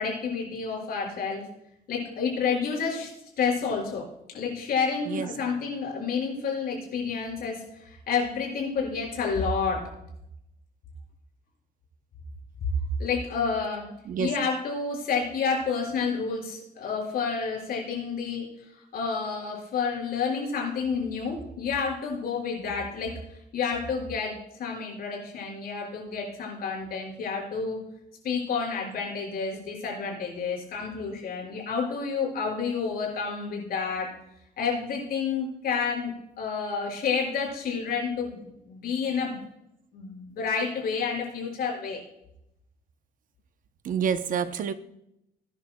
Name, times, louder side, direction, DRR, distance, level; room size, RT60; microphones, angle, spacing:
voice 1, 0.0-1.4 1.9-3.1 3.4-4.0 4.3-9.8 13.0-13.9 14.2-18.5 18.9-23.1 23.5-27.8 28.2-34.1 34.6-39.4 39.9-42.0, left 5 dB, 65° left, -1 dB, 5.5 m, -29 dB
voice 2, 43.8-44.7, right 7 dB, 55° right, 10 dB, 0.8 m, -28 dB
20.0 x 10.5 x 2.3 m, 0.80 s
cardioid pair, 155°, 16 cm